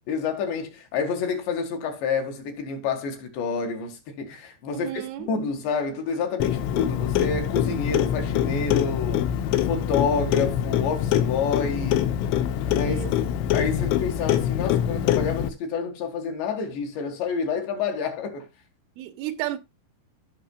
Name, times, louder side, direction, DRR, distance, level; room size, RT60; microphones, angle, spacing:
voice 1, 0.1-9.4 9.6-12.1 12.7-13.0 13.5-18.5, left 5 dB, 70° left, 3.8 m, -28 dB
voice 2, 4.7-5.3 12.8-13.1 19.0-19.6, right 14 dB, 85° right, 3.4 m, -32 dB
Clock, 6.4-15.5, left 10 dB, 85° left, 3.4 m, -24 dB
16.5 x 6.2 x 2.3 m
omnidirectional pair, 5.5 m